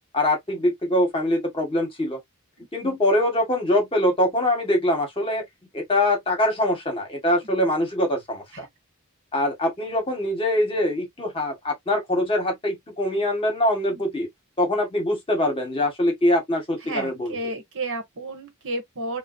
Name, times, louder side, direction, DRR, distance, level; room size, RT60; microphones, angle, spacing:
voice 1, 0.1-2.2 2.7-5.4 5.7-8.7 9.3-14.3 14.6-17.4, left 1 dB, 25° left, 1.4 m, -23 dB
voice 2, 2.6-3.0 8.5-8.7 13.9-14.0 16.8-19.2, right 2 dB, 60° right, 1.2 m, -32 dB
3.8 x 2.3 x 2.5 m
head